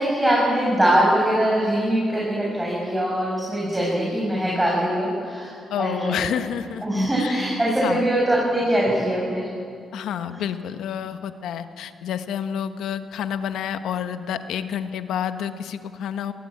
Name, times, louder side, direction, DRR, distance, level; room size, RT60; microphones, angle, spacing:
voice 1, 0.0-5.5 5.8-6.2 6.8-9.5, right 1 dB, 15° right, -5 dB, 7.7 m, -22 dB
voice 2, 5.7-6.8 7.2-7.4 7.8-8.1 9.9-16.3, left 9 dB, 80° left, 9 dB, 1.3 m, -29 dB
23.0 x 18.0 x 8.7 m, 2.3 s
cardioid pair, 70°, 0 cm